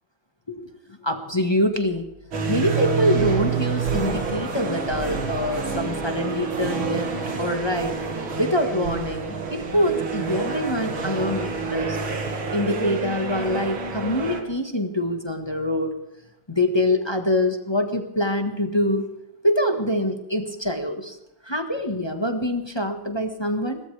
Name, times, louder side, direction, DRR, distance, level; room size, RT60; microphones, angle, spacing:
voice 1, 1.0-2.1 2.5-7.1 7.4-8.0 8.4-12.0 12.5-15.9 16.5-19.1 19.4-21.2 21.4-23.8, left 1 dB, 15° left, 5 dB, 1.1 m, -25 dB
sound 1, 2.3-14.4, right 5 dB, 80° right, 2.7 m, -28 dB
21.5 x 18.0 x 3.4 m, 0.88 s
omnidirectional pair, 2.2 m